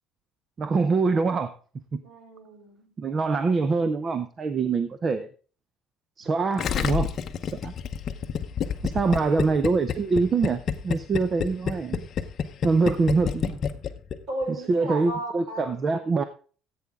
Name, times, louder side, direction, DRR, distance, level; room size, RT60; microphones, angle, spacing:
voice 1, 0.6-1.5 1.9-2.0 3.0-5.3 6.2-7.1 7.6-7.7 8.8-12.1 12.6-13.6 14.7-16.2, right 4 dB, 25° right, 11 dB, 0.6 m, -24 dB
voice 2, 2.0-3.0 14.3-16.1, right 1 dB, 45° right, 1 dB, 5.4 m, -36 dB
Gurgling, 6.6-14.2 14.4-14.5, left 7 dB, 35° left, 0.9 m, -28 dB
14.5 x 8.4 x 3.6 m, 0.40 s
cardioid pair, 165°, 0 cm